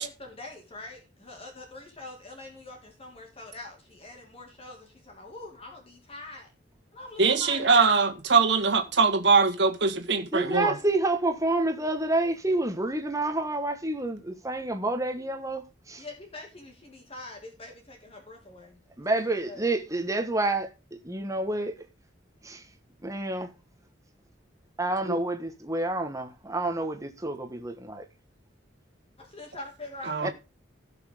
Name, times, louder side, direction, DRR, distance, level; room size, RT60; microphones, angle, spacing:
voice 1, 0.0-6.5 6.9-7.8 15.9-18.8 19.1-19.2 19.5-19.7 29.2-30.3, left 2 dB, 30° left, 2.3 m, -44 dB
voice 2, 7.2-10.8 25.1-25.2 30.1-30.3, right 4 dB, 65° right, 1.8 m, -22 dB
voice 3, 10.3-15.6 15.9-16.0 19.0-20.7 21.0-21.7 22.4-22.6 23.0-23.5 24.8-28.0 30.2-30.3, right 2 dB, 15° right, 1.5 m, -28 dB
17.0 x 5.8 x 3.7 m
head